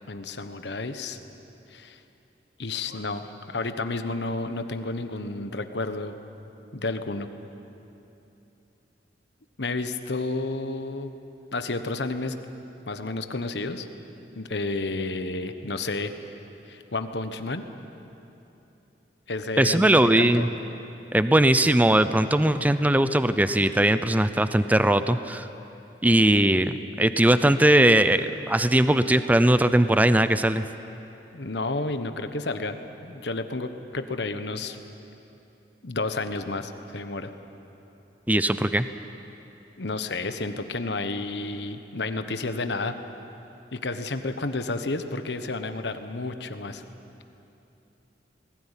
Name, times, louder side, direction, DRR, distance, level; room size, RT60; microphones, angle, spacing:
voice 1, 0.1-1.2 1.7-2.0 2.6-6.1 6.7-7.3 9.6-11.1 11.5-12.3 12.9-13.9 14.3-16.1 16.7-17.6 19.3-20.5 31.3-32.8 33.0-34.8 35.8-37.3 39.8-43.0 43.7-46.8, left 3 dB, 70° left, 9 dB, 1.2 m, -31 dB
voice 2, 19.6-20.5 21.1-25.5 26.0-30.7 38.3-38.9, right 1 dB, 10° right, 12 dB, 0.5 m, -20 dB
21.0 x 17.5 x 10.0 m, 3.0 s
head